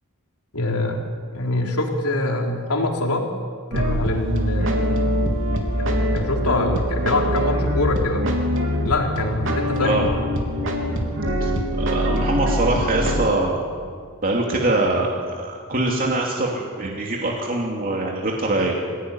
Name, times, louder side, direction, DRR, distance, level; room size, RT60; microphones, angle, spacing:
voice 1, 0.5-3.3 3.7-5.0 5.8-8.2 8.8-10.0, left 2 dB, 80° left, 1 dB, 3.8 m, -24 dB
sound 1, 3.7-13.3, equal, 60° right, 3.4 m, -23 dB
voice 2, 11.8-13.6 14.2-18.7, right 2 dB, 40° right, -2 dB, 2.9 m, -23 dB
25.5 x 17.0 x 9.8 m, 2.1 s
head